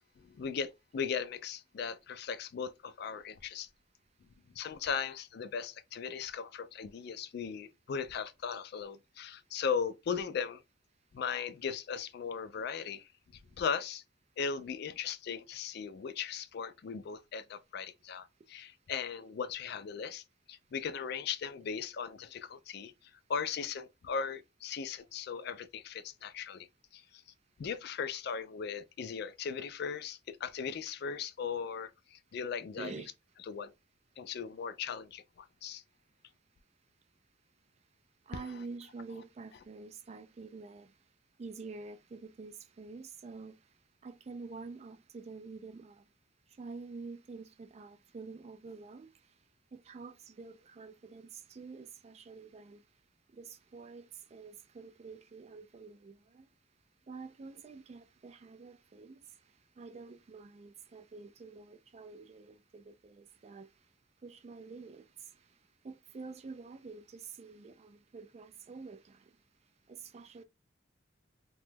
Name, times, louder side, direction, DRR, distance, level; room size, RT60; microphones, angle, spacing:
voice 1, 0.2-3.7 4.6-10.6 11.1-13.1 13.6-14.0 14.4-22.9 23.3-26.7 26.9-27.2 27.6-33.0 33.5-33.7 34.2-35.8, left 6 dB, 55° left, 0.3 m, -38 dB
voice 2, 32.7-33.1 38.3-40.9 41.4-43.6 44.0-46.0 46.6-49.1 49.7-52.8 53.3-56.5 57.1-59.2 59.8-63.7 64.2-65.3 65.8-69.3 69.9-70.4, right 4 dB, 35° right, 0.3 m, -48 dB
3.0 x 2.2 x 3.2 m
head